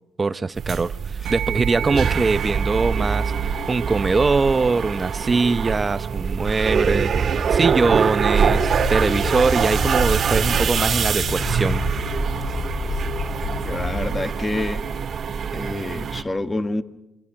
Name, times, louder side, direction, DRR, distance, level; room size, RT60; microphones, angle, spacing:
voice 1, 0.2-12.1, right 4 dB, 30° right, 0.8 m, -22 dB
sound 1, 0.5-16.2, right 6 dB, 55° right, 1.9 m, -24 dB
sound 2, 1.3-10.9, right 11 dB, 75° right, 1.1 m, -37 dB
sound 3, 8.5-14.1, left 5 dB, 55° left, 2.6 m, -29 dB
voice 2, 13.6-14.8 15.5-16.8, left 2 dB, 20° left, 1.5 m, -27 dB
27.0 x 24.5 x 5.9 m
cardioid pair, 90°, 0 cm